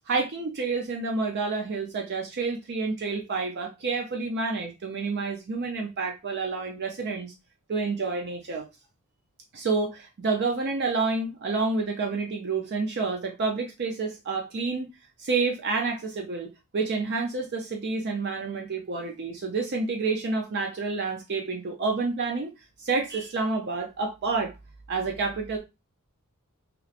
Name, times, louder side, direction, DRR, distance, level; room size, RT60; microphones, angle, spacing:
voice 1, 0.1-7.3 7.7-8.6 9.5-14.9 15.2-22.5 22.8-24.5 24.9-25.6, right 4 dB, 50° right, 0.5 m, -29 dB
3.0 x 2.9 x 2.4 m
head